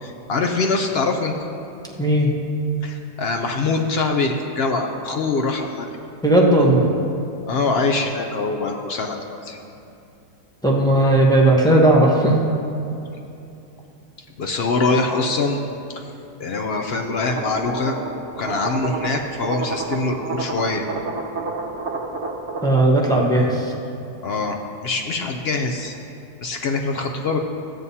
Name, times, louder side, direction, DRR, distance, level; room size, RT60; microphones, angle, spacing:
voice 1, 0.0-1.3 2.8-6.0 7.5-9.6 14.4-15.6 15.9-16.0 16.4-18.0 18.4-20.8 24.2-25.9 26.4-27.4, left 3 dB, 65° left, 3 dB, 0.6 m, -23 dB
voice 2, 2.0-2.3 6.2-6.9 10.6-12.3 22.6-23.7, right 1 dB, 5° left, -3 dB, 0.7 m, -16 dB
sound 1, 17.3-22.8, right 3 dB, 50° right, 1.1 m, -30 dB
14.5 x 9.0 x 2.8 m, 2.7 s
omnidirectional pair, 1.7 m